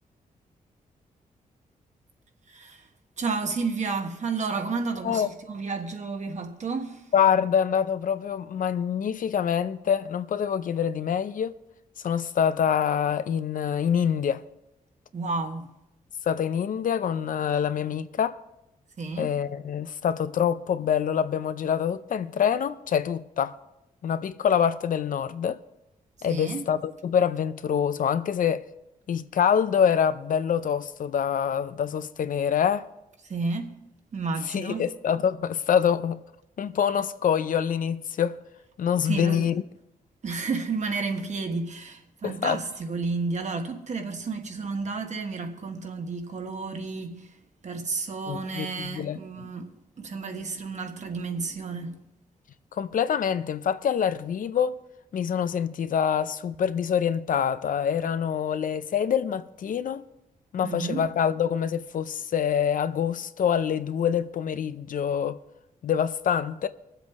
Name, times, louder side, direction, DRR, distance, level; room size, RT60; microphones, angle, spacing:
voice 1, 2.5-2.9 3.2-7.1 15.1-15.7 19.0-19.3 26.3-26.7 33.2-33.8 34.1-34.9 39.0-39.6 40.2-47.4 47.6-52.0 60.6-61.1, right 4 dB, 55° right, 1.4 m, -31 dB
voice 2, 7.1-11.5 12.0-14.4 16.3-18.4 19.2-23.5 24.0-25.6 26.2-28.6 29.1-32.8 34.5-36.2 36.6-38.4 38.8-39.6 42.2-42.6 48.3-49.2 52.8-54.8 55.1-60.0 60.5-65.4 65.8-66.7, left 8 dB, 70° left, 0.6 m, -25 dB
21.0 x 7.7 x 3.6 m
cardioid pair, 80°, 15 cm